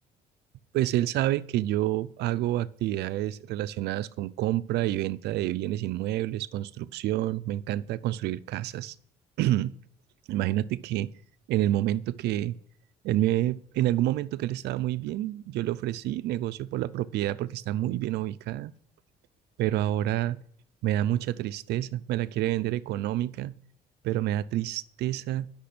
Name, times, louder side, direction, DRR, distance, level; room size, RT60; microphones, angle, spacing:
voice 1, 0.7-8.9 9.4-9.8 10.3-11.1 11.5-12.6 13.0-18.7 19.6-20.4 20.8-23.6 24.0-25.5, right 14 dB, 80° right, 17 dB, 0.6 m, -28 dB
12.0 x 6.0 x 6.0 m, 0.66 s
cardioid pair, 110°, 17 cm